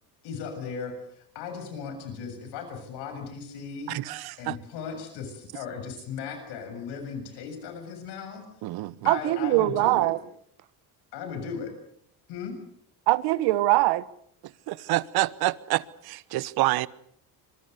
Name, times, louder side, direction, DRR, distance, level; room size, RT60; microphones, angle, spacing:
voice 1, 0.2-4.0 4.4-8.5 9.0-10.1 11.1-11.7 12.3-12.6, left 6 dB, 85° left, 7.3 m, -37 dB
voice 2, 3.9-4.6 8.6-9.1 14.4-16.9, right 17 dB, 70° right, 1.1 m, -28 dB
voice 3, 9.1-10.2 13.1-14.0, right 18 dB, 85° right, 1.5 m, -22 dB
26.0 x 24.5 x 6.8 m
cardioid pair, 140°, 39 cm